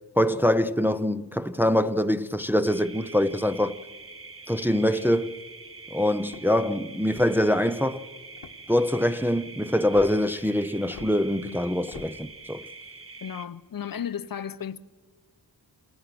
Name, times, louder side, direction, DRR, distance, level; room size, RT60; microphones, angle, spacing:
voice 1, 0.2-3.8 4.5-5.4 5.9-8.0 8.7-12.6, left 1 dB, 5° right, 0.6 m, -24 dB
sound 1, 2.6-13.5, right 4 dB, 30° right, 1.5 m, -45 dB
sound 2, 6.2-6.7 7.3-7.7 8.4-8.8 9.9-10.1 10.9-11.1 11.9-12.1, left 7 dB, 85° left, 1.6 m, -44 dB
voice 2, 13.2-14.8, left 8 dB, 55° left, 0.9 m, -34 dB
29.0 x 26.5 x 6.0 m
wide cardioid pair, 100°, 41 cm